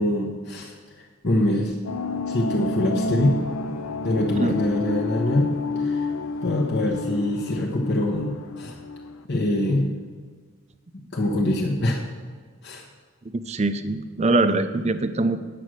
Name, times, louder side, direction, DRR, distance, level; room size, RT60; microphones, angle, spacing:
voice 1, 0.0-1.7 2.3-3.4 4.0-6.1 6.4-8.8 9.3-9.9 11.1-12.0 12.6-12.8, left 1 dB, 50° left, 0 dB, 1.0 m, -24 dB
sound 1, 1.8-9.2, left 2 dB, 70° left, 0.6 m, -30 dB
voice 2, 13.5-15.4, right 2 dB, 30° right, 10 dB, 0.5 m, -23 dB
9.8 x 7.6 x 6.3 m, 1.5 s
head